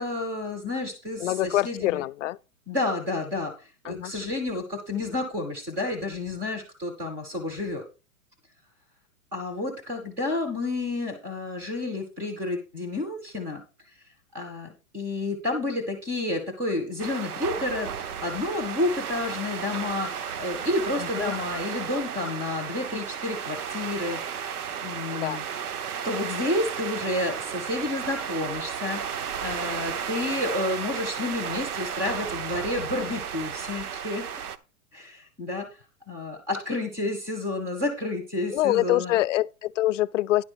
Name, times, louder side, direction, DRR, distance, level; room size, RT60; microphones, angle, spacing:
voice 1, 0.0-2.0 2.7-7.8 9.3-13.6 14.3-25.4 26.0-34.3 34.9-35.7 36.1-39.1, left 2 dB, 5° right, 0.4 m, -30 dB
voice 2, 1.2-2.4 3.8-4.1 21.0-21.3 25.1-25.4 38.5-40.4, left 15 dB, 60° left, 0.5 m, -25 dB
sound 1, 17.0-34.6, right 8 dB, 85° right, 0.9 m, -33 dB
10.5 x 3.9 x 6.7 m
hypercardioid pair, 160°, 43 cm